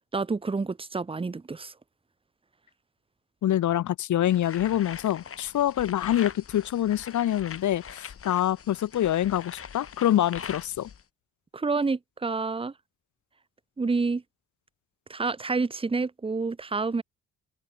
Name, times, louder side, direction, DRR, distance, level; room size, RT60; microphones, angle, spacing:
voice 1, 0.1-1.7 11.5-12.7 13.8-14.2 15.1-17.0, right 4 dB, 20° right, 1.1 m, -28 dB
voice 2, 3.4-10.9, left 12 dB, 75° left, 3.8 m, -25 dB
sound 1, 4.3-11.0, left 7 dB, 45° left, 3.5 m, -42 dB
cardioid pair, 90°, 30 cm